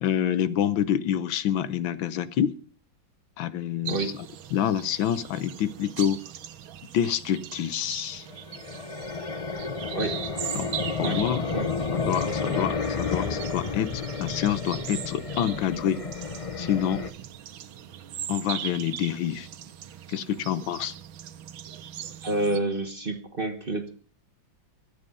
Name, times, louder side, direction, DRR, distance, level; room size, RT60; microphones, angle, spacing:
voice 1, 0.0-2.6 3.4-4.1 4.5-6.2 6.9-8.3 10.5-10.7 11.0-11.4 11.9-16.0 16.6-17.0 18.3-19.5 20.1-20.9, left 10 dB, 80° left, 15 dB, 1.6 m, -27 dB
voice 2, 3.8-4.1 9.9-10.2 11.0-11.2 11.5-11.7 22.2-23.9, right 2 dB, 30° right, 7 dB, 1.3 m, -28 dB
sound 1, 3.9-22.6, right 10 dB, 90° right, 1.8 m, -40 dB
sound 2, 8.3-17.1, left 4 dB, 40° left, 0.5 m, -31 dB
24.0 x 8.8 x 5.5 m, 0.42 s
omnidirectional pair, 2.1 m